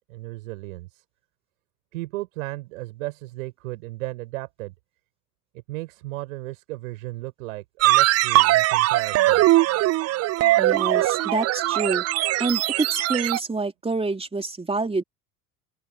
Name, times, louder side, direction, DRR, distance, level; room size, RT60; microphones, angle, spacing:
voice 1, 0.1-1.0 1.9-4.7 5.5-9.4, right 19 dB, 60° right, 6.0 m, -35 dB
sound 1, 7.8-13.4, right 17 dB, 35° right, 0.8 m, -20 dB
voice 2, 10.6-12.0 12.4-15.0, right 3 dB, 15° right, 3.6 m, -27 dB
open air
figure-of-eight pair, 65°, 45 cm